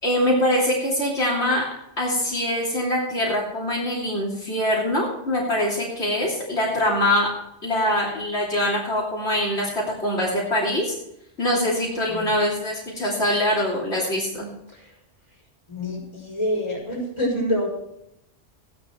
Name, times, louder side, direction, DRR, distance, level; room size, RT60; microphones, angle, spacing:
voice 1, 0.0-1.6 2.0-7.3 7.6-10.9 11.4-14.5, left 1 dB, 70° left, -5 dB, 3.4 m, -23 dB
voice 2, 14.7-15.0 15.3-15.4 15.7-17.7, equal, 25° left, -3 dB, 6.0 m, -27 dB
16.0 x 10.0 x 4.5 m, 0.82 s
omnidirectional pair, 1.2 m